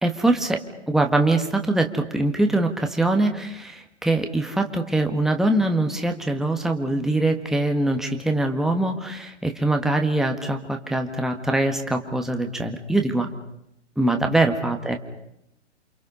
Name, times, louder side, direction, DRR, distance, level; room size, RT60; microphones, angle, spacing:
voice 1, 0.0-13.3 14.0-15.0, right 2 dB, ahead, 4 dB, 1.7 m, -23 dB
29.0 x 26.5 x 5.6 m, 0.78 s
figure-of-eight pair, 120°, 35 cm